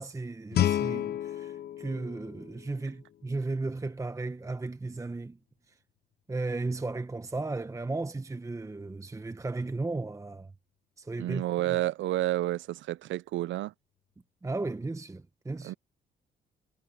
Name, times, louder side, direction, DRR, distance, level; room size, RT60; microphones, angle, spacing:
voice 1, 0.0-5.4 6.3-10.5 11.0-11.8 14.4-15.8, right 3 dB, 15° right, 1.0 m, -35 dB
Guitar, 0.5-3.3, left 11 dB, 55° left, 0.6 m, -31 dB
voice 2, 11.2-13.7 15.6-15.7, right 15 dB, 70° right, 0.5 m, -30 dB
cardioid pair, 90°, 20 cm